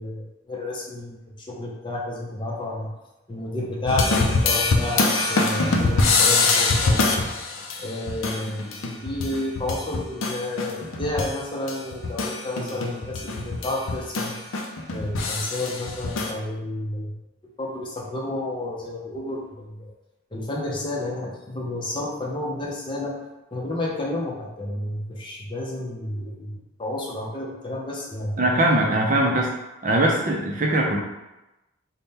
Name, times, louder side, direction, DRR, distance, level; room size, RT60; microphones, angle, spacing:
voice 1, 0.0-2.9 3.3-7.3 7.8-8.7 9.0-14.4 14.9-17.2 17.6-19.9 20.3-23.2 23.5-28.6, left 1 dB, 25° left, -2 dB, 0.6 m, -31 dB
sound 1, 3.9-11.4 11.7-16.3, left 3 dB, 90° left, 0.5 m, -24 dB
voice 2, 28.4-29.5 29.8-31.0, right 1 dB, 40° right, -1 dB, 0.5 m, -21 dB
3.5 x 2.2 x 4.1 m, 0.98 s
head